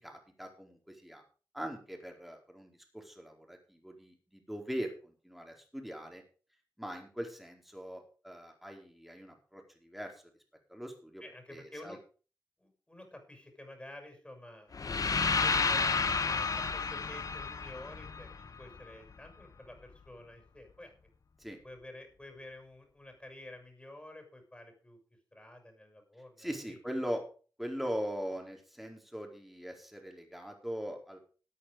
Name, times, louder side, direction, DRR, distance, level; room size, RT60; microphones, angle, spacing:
voice 1, 0.0-1.2 1.5-6.2 6.8-10.2 10.7-11.2 11.5-12.0 21.4-21.6 26.4-27.2 27.6-31.2, equal, ahead, 2 dB, 4.5 m, -41 dB
voice 2, 11.2-12.0 12.6-14.7 15.3-20.9 21.6-25.0 25.3-26.8, left 1 dB, 15° left, 5 dB, 6.4 m, -50 dB
sound 1, 14.7-18.8, left 5 dB, 55° left, 1.3 m, -31 dB
14.0 x 8.5 x 5.1 m, 0.37 s
cardioid pair, 65°, 7 cm